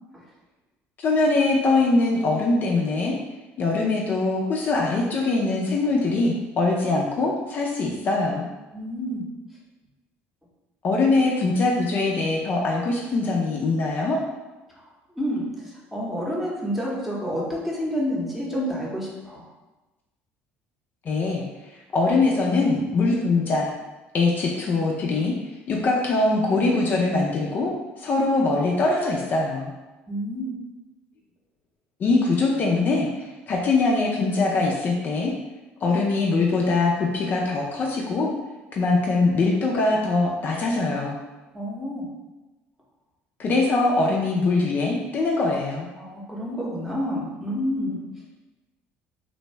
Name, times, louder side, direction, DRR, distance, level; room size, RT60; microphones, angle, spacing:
voice 1, 1.0-3.2 3.6-8.5 10.8-14.2 21.1-21.4 21.9-23.7 24.1-25.3 25.7-29.7 32.0-35.3 35.8-38.3 38.7-41.1 43.4-45.9, left 3 dB, 40° left, -1 dB, 0.4 m, -22 dB
voice 2, 8.7-9.3 14.8-14.9 15.1-19.5 30.1-30.5 41.5-42.1 46.0-48.0, equal, 5° right, -5 dB, 0.8 m, -29 dB
2.6 x 2.1 x 3.2 m, 1.1 s
cardioid pair, 105°, 5 cm